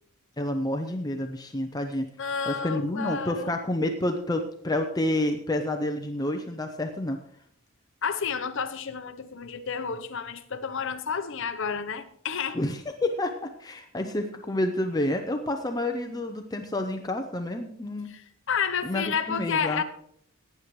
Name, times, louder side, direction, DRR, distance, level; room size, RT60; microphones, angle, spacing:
voice 1, 0.4-2.1 2.5-7.2 12.5-18.1 18.8-19.8, left 1 dB, 15° left, 0.6 m, -29 dB
voice 2, 2.2-3.5 8.0-12.6 18.1-18.2 18.5-19.8, left 6 dB, 55° left, 0.8 m, -30 dB
17.5 x 9.4 x 3.1 m
head